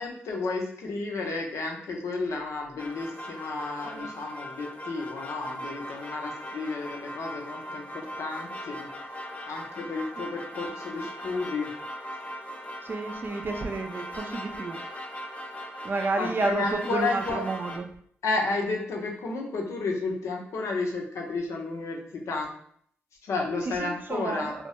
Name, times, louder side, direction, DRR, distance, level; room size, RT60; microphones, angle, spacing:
voice 1, 0.0-8.9 9.5-11.7 16.1-17.4 18.2-22.5 23.2-24.5, left 3 dB, 75° left, 0 dB, 0.6 m, -32 dB
sound 1, 2.8-17.8, equal, 25° left, 0.6 m, -39 dB
voice 2, 12.8-14.8 15.8-17.9 23.8-24.5, right 3 dB, 45° right, 5 dB, 0.4 m, -30 dB
2.2 x 2.1 x 2.8 m, 0.62 s
supercardioid pair, 45°, 5 cm